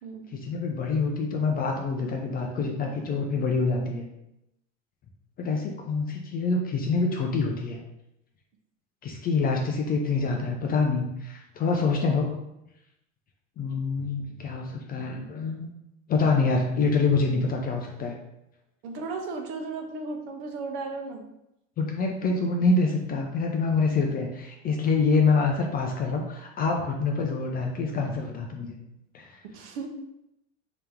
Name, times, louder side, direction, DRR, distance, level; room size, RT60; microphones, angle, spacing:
voice 1, 0.3-4.1 5.4-7.8 9.0-12.3 13.6-15.7 16.1-18.1 21.8-28.7 29.1-29.4, left 4 dB, 25° left, 2 dB, 0.4 m, -26 dB
voice 2, 18.8-21.3 29.5-29.9, right 3 dB, 60° right, 3 dB, 0.8 m, -35 dB
3.4 x 2.9 x 3.4 m, 0.85 s
hypercardioid pair, 100°, 40 cm